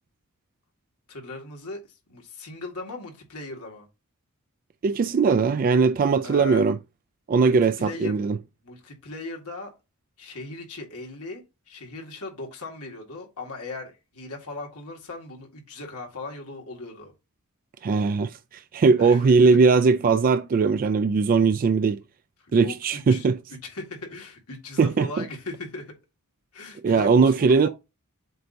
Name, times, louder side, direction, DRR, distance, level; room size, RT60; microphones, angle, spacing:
voice 1, 1.1-1.8 2.1-3.9 6.2-6.7 7.4-8.2 8.6-9.7 10.2-17.1 19.0-19.5 22.4-23.3 23.6-25.9 26.5-27.7, left 2 dB, 80° left, 2.1 m, -38 dB
voice 2, 4.8-6.8 7.3-8.4 17.8-22.0 22.5-23.4 24.8-25.2 26.8-27.7, right 4 dB, 40° right, 0.3 m, -20 dB
7.6 x 2.7 x 5.2 m
head